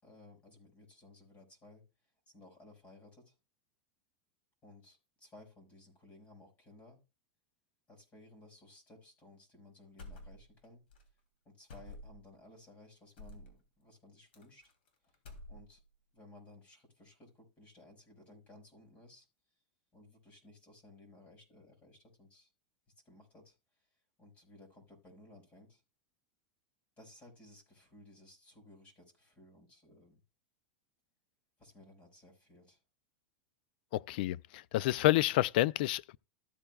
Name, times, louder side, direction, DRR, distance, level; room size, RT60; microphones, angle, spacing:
voice 1, 0.0-1.8 2.3-3.3 4.6-7.0 7.9-10.8 11.5-14.7 15.1-15.2 15.5-15.8 16.1-19.3 19.9-22.5 23.1-23.6 24.2-25.8 27.0-30.2 31.6-32.8, left 2 dB, 25° left, 5.3 m, -58 dB
sound 1, 10.0-10.7 10.9-11.1 11.7-12.3 13.2-13.5 14.3-14.9 15.1-15.9, left 1 dB, 85° left, 3.0 m, -50 dB
voice 2, 33.9-36.2, left 15 dB, 60° left, 0.4 m, -29 dB
14.0 x 8.5 x 2.3 m
supercardioid pair, 145°, 6 cm